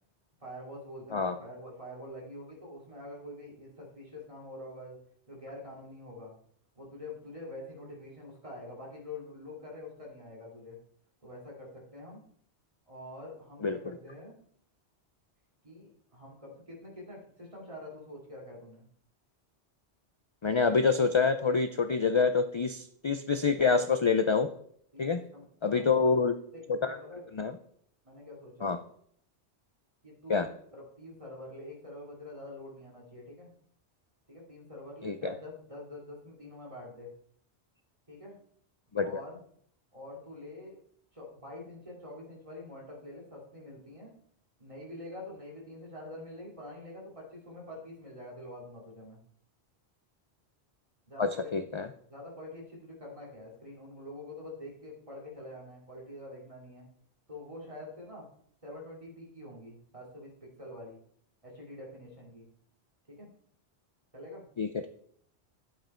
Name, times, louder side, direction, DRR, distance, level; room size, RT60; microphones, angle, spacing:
voice 1, 0.4-5.0 5.3-6.3 6.7-10.8 11.2-12.2 12.9-14.3 15.6-18.8 24.9-25.0 25.3-26.1 26.5-27.3 28.0-28.7 30.0-33.5 34.3-37.1 38.1-38.4 39.0-39.4 39.9-40.8 41.1-44.1 44.6-49.2 51.1-51.6 52.1-56.9 57.3-58.3 58.6-60.3 60.6-61.0 61.4-62.5 63.1-63.3 64.1-64.5, left 1 dB, 30° right, -3 dB, 3.0 m, -46 dB
voice 2, 13.6-14.0 20.4-24.5 25.0-25.2 25.6-26.3 26.8-27.0 27.3-27.5 28.6-28.8 30.3-30.5 35.0-35.3 38.9-39.2 51.2-51.9 64.6-64.9, left 5 dB, 40° left, 9 dB, 0.4 m, -27 dB
11.5 x 8.0 x 4.4 m, 0.64 s
omnidirectional pair, 1.1 m